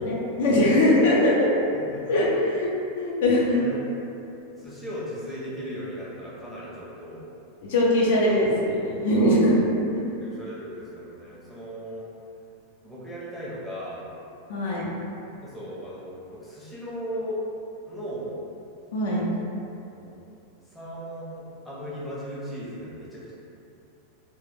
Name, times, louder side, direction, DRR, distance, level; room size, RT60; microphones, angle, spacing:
voice 1, 0.0-1.5 2.1-2.7 3.0-3.7 7.6-9.6 14.5-14.9 18.9-19.3, left 1 dB, 75° left, -4 dB, 0.5 m, -21 dB
voice 2, 1.9-2.3 3.5-4.0 4.6-7.3 10.2-12.1 12.8-14.0 15.3-17.4 17.8-18.3 19.9-20.2 20.6-23.3, equal, 5° left, -9 dB, 0.6 m, -37 dB
2.2 x 2.1 x 3.1 m, 2.7 s
supercardioid pair, 150°, 0 cm